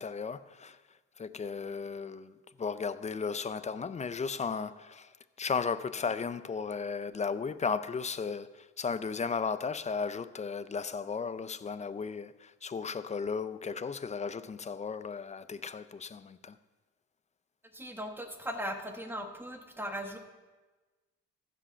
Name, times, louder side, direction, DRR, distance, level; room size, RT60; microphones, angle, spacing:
voice 1, 0.0-16.6, left 5 dB, 25° left, 0.4 m, -35 dB
voice 2, 17.7-20.2, equal, 5° right, 1.3 m, -38 dB
15.0 x 5.1 x 5.7 m
cardioid pair, 90°, 30 cm